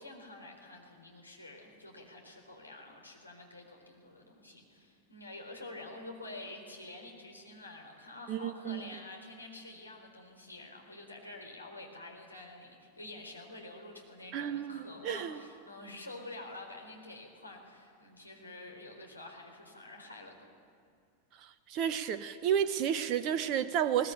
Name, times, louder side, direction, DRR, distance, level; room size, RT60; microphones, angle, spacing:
voice 1, 0.0-20.6, left 2 dB, 85° left, 0 dB, 4.2 m, -48 dB
voice 2, 8.3-8.8 14.3-15.4 21.7-24.1, right 9 dB, 40° right, 12 dB, 0.9 m, -31 dB
21.5 x 18.5 x 8.9 m, 2.1 s
figure-of-eight pair, 90°, 0 cm